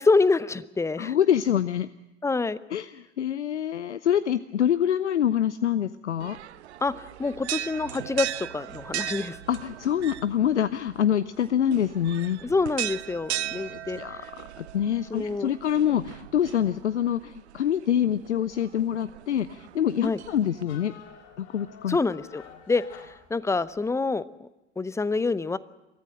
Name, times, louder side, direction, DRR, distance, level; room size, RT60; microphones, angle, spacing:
voice 1, 0.0-1.1 2.2-2.6 6.8-9.4 12.4-14.3 15.1-15.5 20.0-20.2 21.9-22.8 23.3-24.5 24.8-25.6, left 3 dB, 10° left, 17 dB, 0.6 m, -26 dB
voice 2, 1.0-1.9 2.7-6.4 9.5-12.4 13.3-20.9 21.4-22.0, left 10 dB, 75° left, 15 dB, 0.6 m, -26 dB
sound 1, 6.2-20.6, right 12 dB, 70° right, 0.7 m, -38 dB
sound 2, 19.6-23.9, left 7 dB, 50° left, 4.8 m, -49 dB
23.0 x 14.5 x 8.8 m, 1.0 s
figure-of-eight pair, 80°, 35 cm